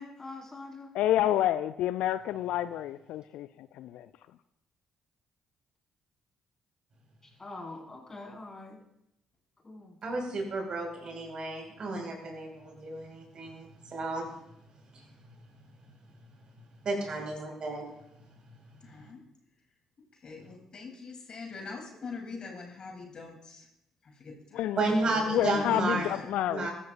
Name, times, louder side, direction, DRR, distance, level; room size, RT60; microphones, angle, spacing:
voice 1, 0.0-0.9 7.4-8.8 9.6-10.0, left 2 dB, 25° left, -1 dB, 4.9 m, -44 dB
voice 2, 0.9-4.1 24.5-24.8 25.3-26.7, left 12 dB, 65° left, 14 dB, 0.4 m, -29 dB
voice 3, 10.0-14.3 14.9-15.0 16.8-17.8 24.8-26.1 26.5-26.7, right 2 dB, 45° right, 1 dB, 5.1 m, -32 dB
voice 4, 17.0-17.3 18.8-19.2 20.1-23.7 24.0-24.7 25.1-26.3, left 4 dB, 45° left, 2 dB, 3.2 m, -43 dB
22.5 x 13.0 x 2.6 m, 0.82 s
figure-of-eight pair, 45°, 2 cm